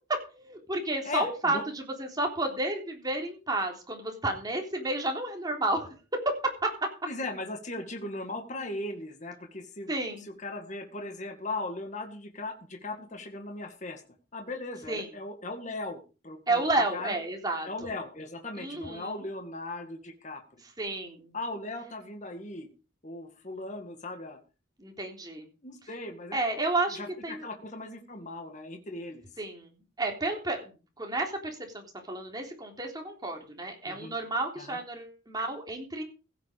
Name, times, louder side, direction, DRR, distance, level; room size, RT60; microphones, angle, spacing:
voice 1, 0.3-5.9 6.6-6.7 9.9-10.3 14.9-15.1 16.5-17.9 18.6-19.2 20.8-21.3 24.8-25.5 26.3-27.5 29.4-36.0, right 2 dB, 20° right, 2 dB, 3.5 m, -31 dB
voice 2, 1.1-1.6 7.1-9.9 10.2-14.0 14.3-16.6 16.9-17.2 17.6-20.4 21.3-22.7 23.0-24.4 25.6-26.4 27.0-29.3 33.9-34.1 34.6-34.8, left 2 dB, 40° left, 4 dB, 2.1 m, -38 dB
16.0 x 8.3 x 5.1 m, 0.34 s
head